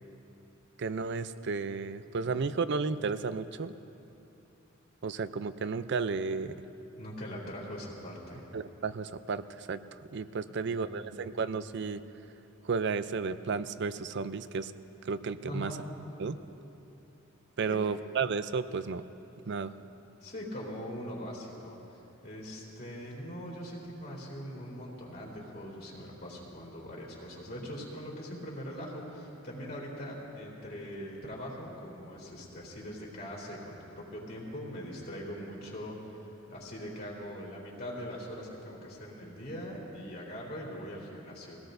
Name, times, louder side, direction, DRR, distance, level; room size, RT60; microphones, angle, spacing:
voice 1, 0.8-3.7 5.0-6.5 8.5-9.8 10.1-12.0 12.6-14.7 15.0-15.7 16.2-16.4 17.6-19.0 19.5-19.7, right 5 dB, 55° right, 13 dB, 0.5 m, -33 dB
voice 2, 7.0-8.4 10.6-11.2 15.4-15.8 17.6-17.7 20.2-41.6, equal, 50° left, -5 dB, 3.3 m, -42 dB
22.5 x 17.5 x 2.6 m, 3.0 s
head